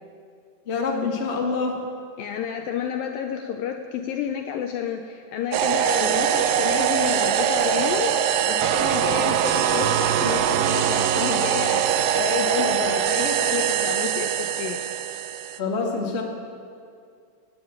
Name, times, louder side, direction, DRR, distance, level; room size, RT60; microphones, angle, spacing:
voice 1, 0.7-1.7 15.6-16.2, left 4 dB, 55° left, 0 dB, 0.7 m, -25 dB
voice 2, 2.2-14.8, left 8 dB, 80° left, 5 dB, 2.1 m, -30 dB
sound 1, 5.5-15.6, right 9 dB, 80° right, 2.0 m, -22 dB
18.5 x 9.0 x 8.8 m, 2.4 s
omnidirectional pair, 4.8 m